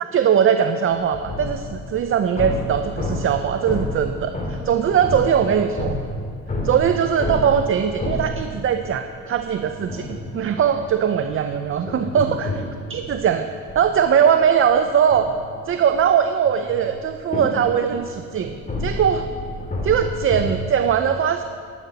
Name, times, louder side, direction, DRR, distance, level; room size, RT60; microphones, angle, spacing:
voice 1, 0.1-6.0 6.6-12.6 12.9-13.5 13.7-15.3 15.7-19.3 19.9-21.4, right 8 dB, 45° right, 8 dB, 0.6 m, -20 dB
sound 1, 0.9-9.0 9.4-20.5, left 1 dB, 25° left, 2.4 m, -30 dB
12.0 x 11.5 x 4.1 m, 2.2 s
cardioid pair, 90°, 30 cm